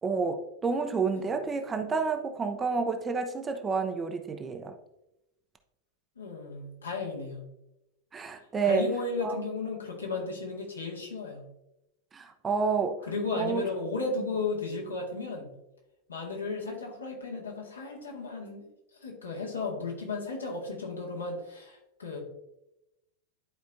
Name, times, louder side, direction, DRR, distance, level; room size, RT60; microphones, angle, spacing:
voice 1, 0.0-4.7 8.1-8.9 9.2-9.4 12.1-13.0 13.3-13.7, right 5 dB, 20° right, 6 dB, 0.7 m, -29 dB
voice 2, 6.2-7.4 8.6-11.4 13.1-15.5 16.1-18.6 19.0-22.2, left 3 dB, 75° left, -2 dB, 1.9 m, -34 dB
11.0 x 4.6 x 2.6 m, 0.90 s
figure-of-eight pair, 90°, 0 cm